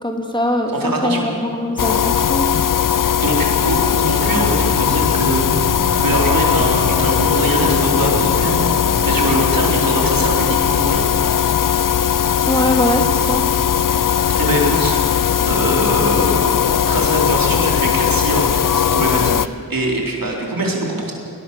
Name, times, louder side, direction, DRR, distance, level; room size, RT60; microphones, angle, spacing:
voice 1, 0.0-2.5 12.4-13.4, left 1 dB, 15° left, 2 dB, 2.7 m, -21 dB
voice 2, 0.8-1.3 3.2-5.7 6.0-8.7 9.0-11.1 14.4-15.0 15.5-19.4 19.7-21.1, right 1 dB, 70° right, -1 dB, 4.1 m, -22 dB
sound 1, 1.8-19.5, left 9 dB, 65° left, 0.6 m, -18 dB
sound 2, 4.1-9.2, right 1 dB, 50° right, 2.8 m, -29 dB
21.0 x 19.0 x 7.0 m, 2.7 s
wide cardioid pair, 85°, 36 cm